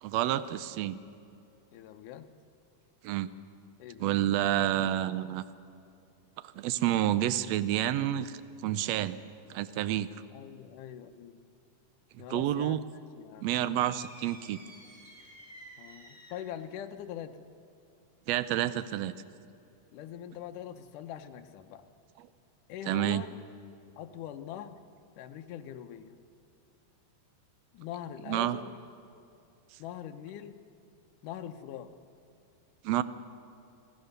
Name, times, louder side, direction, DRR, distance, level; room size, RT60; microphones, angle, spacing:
voice 1, 0.0-1.0 3.0-3.3 4.0-5.4 6.6-9.2 9.5-10.1 12.3-12.8 13.4-14.6 18.3-19.1 22.9-23.2 28.3-28.6 32.8-33.0, right 12 dB, 80° right, 13 dB, 1.5 m, -29 dB
voice 2, 1.7-2.3 3.8-4.2 10.3-11.4 12.2-13.5 15.8-17.4 19.9-21.8 22.7-23.4 24.0-24.8 25.2-26.2 27.7-28.8 29.8-30.6 31.2-31.9, left 10 dB, 80° left, 7 dB, 2.4 m, -42 dB
sound 1, 13.8-16.6, right 1 dB, 15° right, 2.4 m, -52 dB
27.5 x 16.0 x 6.7 m, 2.7 s
omnidirectional pair, 3.7 m